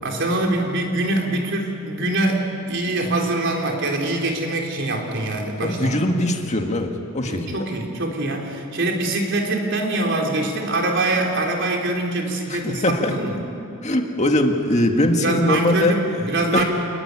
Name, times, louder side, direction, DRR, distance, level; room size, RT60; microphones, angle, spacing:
voice 1, 0.0-6.0 7.2-13.4 15.2-16.6, right 2 dB, 60° right, 1 dB, 4.2 m, -24 dB
voice 2, 5.6-7.7 12.5-13.2 13.8-16.0 16.5-16.6, left 1 dB, 35° left, 3 dB, 2.0 m, -21 dB
28.0 x 20.0 x 9.8 m, 2.7 s
head